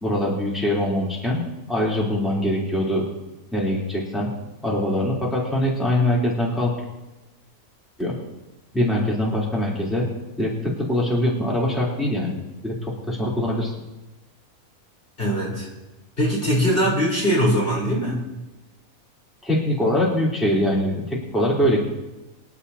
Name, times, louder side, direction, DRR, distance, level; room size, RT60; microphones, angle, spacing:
voice 1, 0.0-1.4 1.7-3.1 3.5-4.3 4.6-6.7 8.0-8.1 8.7-10.1 10.4-10.5 10.9-12.4 12.6-13.7 19.4-21.8, left 1 dB, ahead, -5 dB, 3.4 m, -23 dB
voice 2, 15.2-15.7 16.2-18.3, equal, 40° left, -4 dB, 4.3 m, -21 dB
24.5 x 11.5 x 2.8 m, 1.0 s
omnidirectional pair, 1.5 m